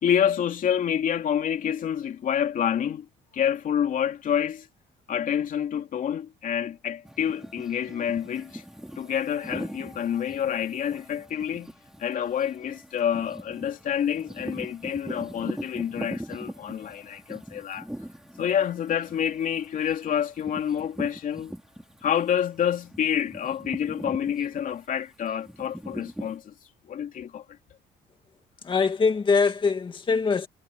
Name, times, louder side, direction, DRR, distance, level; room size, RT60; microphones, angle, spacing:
voice 1, 0.0-3.1 3.3-4.7 5.1-8.6 9.0-11.7 12.0-17.9 18.4-21.5 22.0-26.5 26.9-27.4, left 9 dB, 55° left, 2.8 m, -28 dB
sound 1, 7.0-22.2 22.5-26.4, equal, 5° right, 4.5 m, -41 dB
voice 2, 28.6-30.5, left 5 dB, 30° left, 2.1 m, -23 dB
cardioid pair, 110°, 17 cm